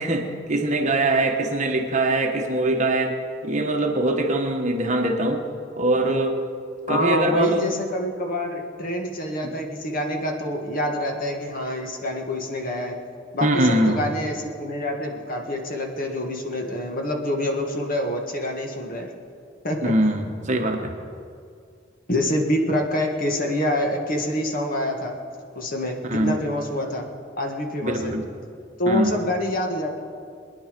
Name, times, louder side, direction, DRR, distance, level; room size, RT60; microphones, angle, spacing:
voice 1, 0.0-3.2 3.4-5.4 5.7-6.4 6.9-7.7 9.4-9.5 13.4-14.1 19.8-20.9 26.1-26.4 27.8-28.3 28.9-29.1, right 1 dB, 40° right, 3 dB, 1.4 m, -22 dB
voice 2, 6.9-13.0 13.3-19.1 19.6-19.9 22.1-25.1 25.6-27.1 27.4-28.2 28.8-30.0, left 1 dB, 45° left, 2 dB, 1.8 m, -26 dB
22.5 x 10.0 x 5.3 m, 2.3 s
head